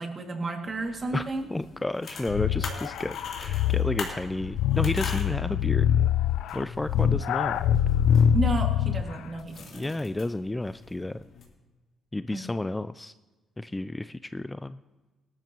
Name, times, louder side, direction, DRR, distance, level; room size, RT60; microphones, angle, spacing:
voice 1, 0.0-1.4 8.3-9.9 12.3-12.4, right 2 dB, 35° right, 3 dB, 2.2 m, -31 dB
sound 1, 0.6-11.4, left 4 dB, 60° left, 3.2 m, -43 dB
voice 2, 1.5-5.9 6.5-7.7 9.7-11.2 12.1-13.1 13.6-14.8, left 2 dB, 15° left, 13 dB, 0.3 m, -31 dB
sound 2, 2.3-9.2, left 9 dB, 85° left, 0.4 m, -24 dB
18.0 x 12.5 x 3.0 m, 1.3 s
cardioid pair, 90°, 0 cm